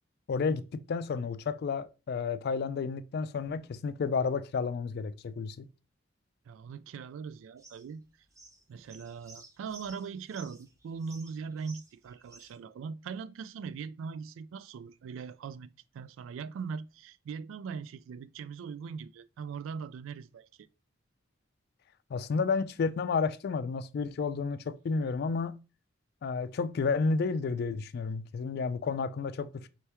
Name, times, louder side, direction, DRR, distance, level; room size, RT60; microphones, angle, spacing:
voice 1, 0.3-5.7 22.1-25.6 26.2-29.7, left 4 dB, 55° left, 0.3 m, -31 dB
voice 2, 6.5-8.0 8.7-15.7 15.9-20.7, right 5 dB, 90° right, 0.3 m, -40 dB
sound 1, 7.6-12.6, right 3 dB, 15° right, 0.6 m, -54 dB
4.4 x 3.4 x 2.8 m
head